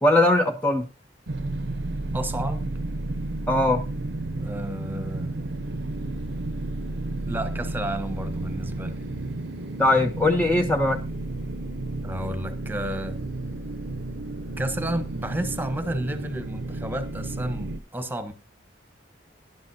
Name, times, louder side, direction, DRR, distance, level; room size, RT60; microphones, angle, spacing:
voice 1, 0.0-0.9 3.5-3.8 9.8-11.0, left 2 dB, 10° left, 0.5 m, -20 dB
sound 1, 1.3-17.8, right 2 dB, 60° right, 0.6 m, -32 dB
voice 2, 2.1-2.8 4.4-5.3 7.3-8.9 12.0-13.2 14.6-18.3, right 1 dB, 10° right, 1.0 m, -31 dB
16.5 x 10.5 x 2.7 m
head